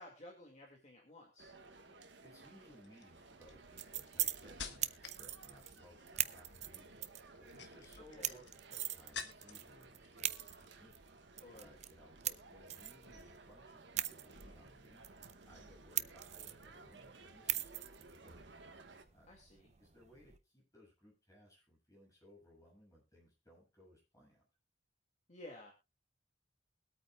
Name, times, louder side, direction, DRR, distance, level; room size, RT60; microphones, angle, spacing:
voice 1, 0.0-1.5 8.1-8.4 11.4-11.7 19.3-19.7 25.3-25.7, left 1 dB, 40° left, 1 dB, 2.3 m, -54 dB
sound 1, 1.4-19.0, right 3 dB, 80° right, 1.4 m, -58 dB
sound 2, 1.8-2.1 2.8-5.2 5.5-6.0 7.3-9.7 10.0-10.7 11.0-11.2, left 6 dB, 70° left, 1.4 m, -50 dB
voice 2, 2.2-11.0 11.5-15.1 15.5-18.5 19.1-19.3 19.8-24.5, equal, 20° left, -2 dB, 7.2 m, -62 dB
sound 3, 3.5-20.4, right 12 dB, 40° right, 0.6 m, -43 dB
22.5 x 8.8 x 2.4 m, 0.26 s
head